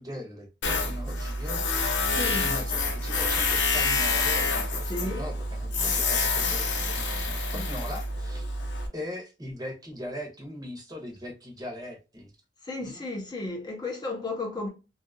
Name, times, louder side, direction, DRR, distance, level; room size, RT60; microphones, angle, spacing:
voice 1, 0.0-1.6 2.3-8.5 8.9-12.3 12.8-13.0, left 1 dB, 20° right, 0.8 m, -40 dB
Tools, 0.6-8.9, left 3 dB, 80° left, 0.7 m, -27 dB
voice 2, 2.1-2.5 4.9-5.2 7.5-7.7 12.6-14.7, left 2 dB, 25° left, 0.6 m, -33 dB
2.7 x 2.3 x 2.6 m
head